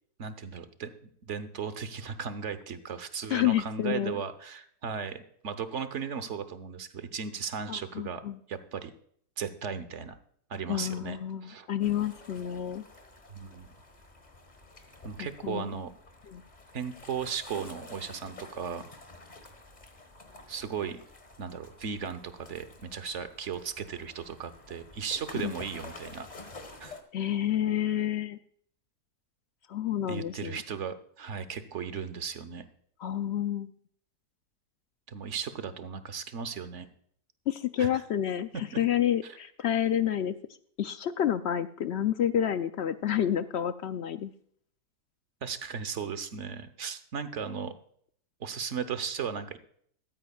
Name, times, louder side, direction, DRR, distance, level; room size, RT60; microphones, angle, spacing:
voice 1, 0.2-8.2 8.5-8.9 9.4-10.2 10.5-11.7 13.3-13.7 15.0-15.9 16.7-18.8 20.5-21.0 21.4-26.3 26.8-26.9 30.1-32.7 35.1-36.9 37.8-38.0 39.2-39.4 45.4-47.7 48.4-49.6, right 6 dB, 55° right, 11 dB, 1.1 m, -36 dB
voice 2, 3.3-4.2 7.7-8.4 10.7-12.8 15.2-15.7 16.3-16.4 25.4-25.5 27.1-28.4 29.7-30.6 33.0-33.7 37.5-40.4 40.8-44.3, left 10 dB, 75° left, 12 dB, 0.6 m, -29 dB
sound 1, 11.8-27.0, left 3 dB, 30° left, 1.5 m, -50 dB
15.0 x 13.0 x 2.4 m, 0.63 s
omnidirectional pair, 1.7 m